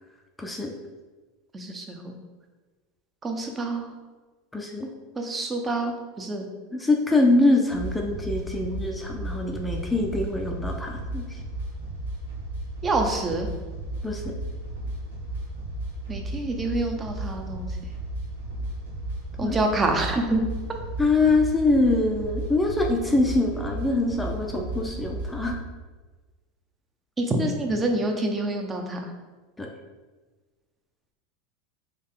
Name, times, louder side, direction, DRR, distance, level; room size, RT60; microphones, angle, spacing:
voice 1, 0.4-0.7 4.5-4.9 6.7-11.4 14.0-14.3 19.4-19.6 21.0-25.6 29.6-29.7, left 2 dB, 10° left, 2 dB, 0.5 m, -24 dB
voice 2, 1.5-2.2 3.2-3.9 5.2-6.5 12.8-13.5 16.1-17.7 19.4-20.4 27.2-29.0, right 2 dB, 25° right, 3 dB, 0.7 m, -27 dB
sound 1, 7.7-25.6, right 1 dB, 90° right, 1.0 m, -34 dB
3.8 x 3.1 x 3.7 m, 1.3 s
hypercardioid pair, 95°, 0 cm